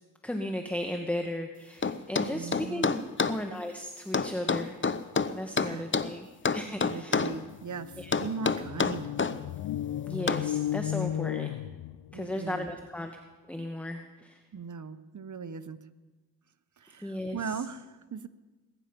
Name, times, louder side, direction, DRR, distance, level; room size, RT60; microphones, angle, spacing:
voice 1, 0.2-4.8 5.3-6.3 6.5-7.3 8.0-8.1 10.0-11.5 12.1-13.1 13.5-14.4 17.0-17.6, left 1 dB, 5° left, 5 dB, 1.4 m, -35 dB
sound 1, 1.8-3.4 4.1-6.1 6.5-7.4 8.1-9.4 10.3-10.5, left 5 dB, 35° left, 0.8 m, -28 dB
voice 2, 2.3-2.9 5.6-5.8 6.8-9.1 12.1-12.7 14.5-15.8 16.8-18.3, right 5 dB, 55° right, 13 dB, 1.0 m, -39 dB
sound 2, 6.9-7.0 7.3-12.3, left 12 dB, 75° left, 0.5 m, -35 dB
21.0 x 10.0 x 5.3 m, 1.2 s
cardioid pair, 45°, 36 cm